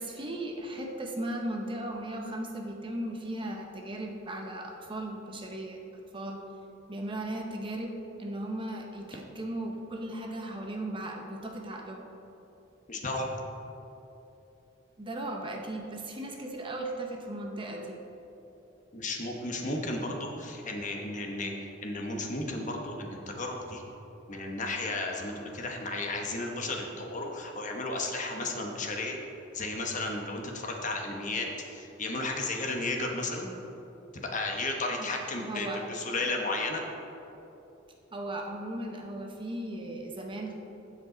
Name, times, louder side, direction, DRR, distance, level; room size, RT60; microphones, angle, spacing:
voice 1, 0.0-5.8 6.1-6.4 6.9-12.0 15.0-18.0 35.0-35.1 35.4-35.8 38.1-40.5, right 1 dB, 25° right, 1 dB, 0.8 m, -37 dB
voice 2, 12.9-13.3 18.9-23.8 24.3-29.2 29.5-33.5 34.2-36.8, left 2 dB, 40° left, 1 dB, 1.1 m, -33 dB
15.5 x 5.3 x 3.9 m, 3.0 s
head